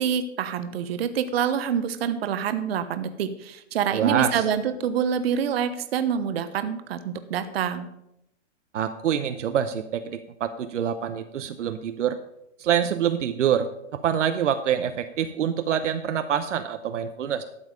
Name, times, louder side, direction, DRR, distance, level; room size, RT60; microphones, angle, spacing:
voice 1, 0.0-7.9, right 8 dB, 50° right, 10 dB, 1.1 m, -26 dB
voice 2, 3.9-4.4 8.7-12.2 12.6-17.4, right 9 dB, 70° right, 8 dB, 0.9 m, -26 dB
12.0 x 7.2 x 5.0 m, 0.82 s
hypercardioid pair, 150°, 38 cm